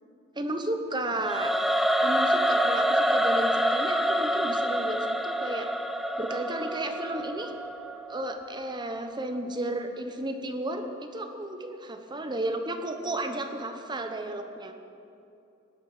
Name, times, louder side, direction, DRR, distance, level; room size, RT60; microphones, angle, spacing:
voice 1, 0.3-1.5 2.0-5.7 6.2-7.5 8.1-14.7, right 1 dB, 20° right, 6 dB, 1.0 m, -33 dB
Singing / Musical instrument, 1.2-8.3, equal, ahead, 0.4 m, -26 dB
18.5 x 11.5 x 5.0 m, 2.7 s
head